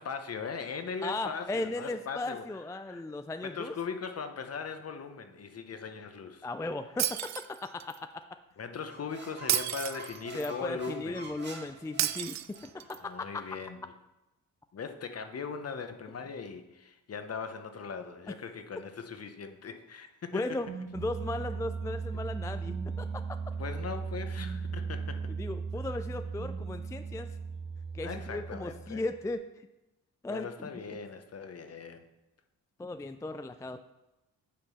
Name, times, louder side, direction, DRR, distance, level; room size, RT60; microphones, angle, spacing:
voice 1, 0.0-3.2 3.4-6.5 8.6-11.4 13.0-13.8 14.7-20.6 22.1-22.2 23.6-25.3 28.0-29.0 30.3-32.1, left 5 dB, 45° left, 8 dB, 0.9 m, -39 dB
voice 2, 1.0-3.7 6.4-8.2 10.3-13.0 20.3-20.7 20.9-23.1 25.4-27.3 27.9-29.4 30.2-30.7 32.8-33.9, left 2 dB, 10° left, 9 dB, 0.3 m, -36 dB
Shatter, 7.0-8.0 9.5-10.5 12.0-13.0, right 12 dB, 55° right, 0.4 m, -32 dB
sound 1, 8.8-12.9, right 3 dB, 30° right, 1.7 m, -47 dB
sound 2, 20.4-29.2, right 5 dB, 70° right, 1.5 m, -37 dB
8.5 x 4.5 x 5.6 m, 1.0 s
cardioid pair, 65°, 34 cm